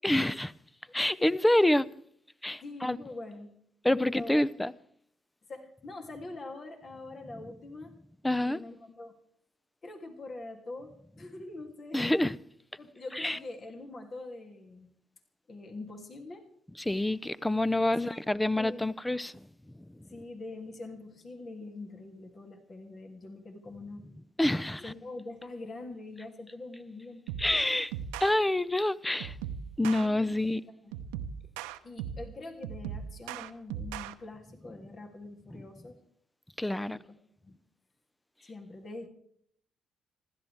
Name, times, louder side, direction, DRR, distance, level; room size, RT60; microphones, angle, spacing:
voice 1, 0.0-0.5 0.9-1.9 2.4-3.0 3.8-4.7 8.2-8.6 11.9-12.4 13.2-13.4 16.9-19.3 24.4-24.8 27.4-27.9 28.2-29.3 29.8-30.7 36.6-37.0, left 1 dB, 10° left, 0.7 m, -27 dB
voice 2, 2.6-3.5 3.9-4.4 5.5-7.9 8.4-9.1 9.8-12.0 12.8-14.9 15.5-16.5 17.7-18.1 18.5-18.9 20.1-24.0 24.8-27.2 30.0-30.3 30.8-31.0 31.8-36.0 36.7-37.1 37.4-37.6 38.4-39.1, left 2 dB, 45° left, 2.9 m, -44 dB
sound 1, 27.3-27.6 27.9-28.4 29.2-30.1 30.9-32.3 32.6-34.1, right 8 dB, 75° right, 0.9 m, -38 dB
26.5 x 13.5 x 3.6 m
figure-of-eight pair, 45°, 0 cm